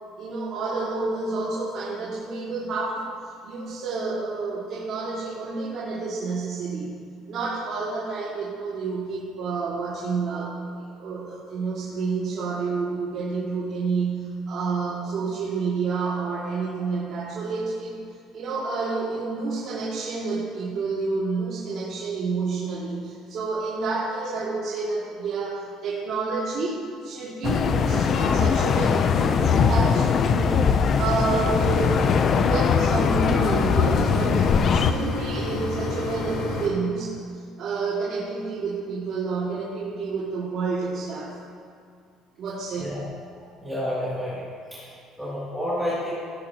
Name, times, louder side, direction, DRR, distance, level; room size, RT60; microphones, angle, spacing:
voice 1, 0.2-3.1 3.4-6.9 7.3-18.0 18.3-30.6 31.0-32.0 32.3-37.2 37.6-41.4 42.4-42.9, right 4 dB, 50° right, -9 dB, 2.1 m, -29 dB
sound 1, 27.4-34.9, left 6 dB, 40° left, 0.4 m, -21 dB
sound 2, 31.5-36.7, left 2 dB, 80° left, 1.6 m, -30 dB
voice 2, 43.6-44.4 44.7-44.9 45.2-46.1, left 1 dB, ahead, -11 dB, 2.4 m, -29 dB
17.0 x 8.1 x 2.8 m, 2.4 s
cardioid pair, 140°, 0 cm